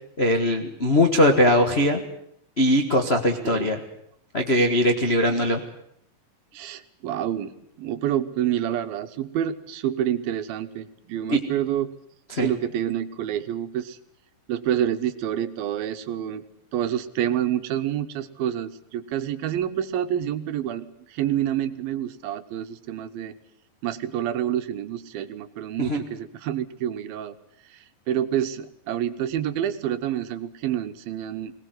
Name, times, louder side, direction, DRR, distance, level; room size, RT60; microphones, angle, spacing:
voice 1, 0.2-2.0 2.6-3.8 4.3-5.6 11.3-11.4 12.3-12.5 25.9-26.0, left 1 dB, 80° left, 3 dB, 0.5 m, -20 dB
voice 2, 3.4-3.7 6.5-7.5 7.8-11.9 12.4-14.0 14.5-16.4 16.7-23.3 23.8-27.3 28.1-31.5, right 10 dB, 85° right, 10 dB, 3.0 m, -28 dB
21.5 x 19.0 x 9.4 m, 0.72 s
omnidirectional pair, 4.1 m